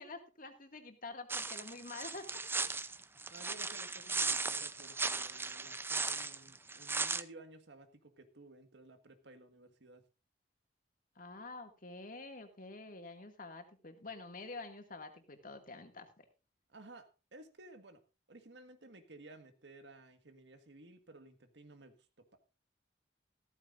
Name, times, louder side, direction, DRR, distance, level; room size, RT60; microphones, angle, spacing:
voice 1, 0.0-2.3 11.2-16.3, left 3 dB, 50° left, 5 dB, 2.2 m, -48 dB
sound 1, 1.3-7.2, right 4 dB, 15° right, 0.6 m, -37 dB
voice 2, 3.3-10.0 16.7-18.0 18.3-22.4, right 2 dB, 80° right, 8 dB, 1.7 m, -55 dB
14.5 x 13.5 x 2.6 m, 0.31 s
head